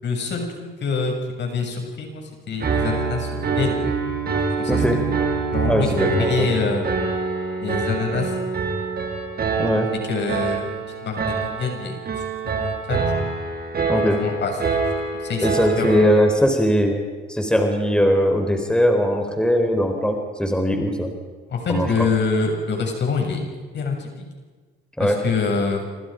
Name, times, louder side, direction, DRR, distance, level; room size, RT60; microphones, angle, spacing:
voice 1, 0.0-3.8 4.6-4.8 5.5-6.9 7.6-8.3 10.1-10.7 11.0-11.9 12.4-13.3 14.2-14.8 15.2-15.5 15.8-16.0 21.5-23.4 23.7-24.3 25.0-25.8, left 4 dB, 60° left, 2 dB, 7.0 m, -25 dB
Piano, 2.6-16.3, right 4 dB, 50° right, 5.2 m, -25 dB
voice 2, 4.7-5.0 5.7-6.5 9.6-9.9 13.9-14.2 15.4-17.0 17.3-21.1 21.7-21.9 25.0-25.2, equal, 5° left, 4 dB, 3.9 m, -20 dB
27.5 x 25.5 x 5.2 m, 1.4 s
cardioid pair, 90°, 20 cm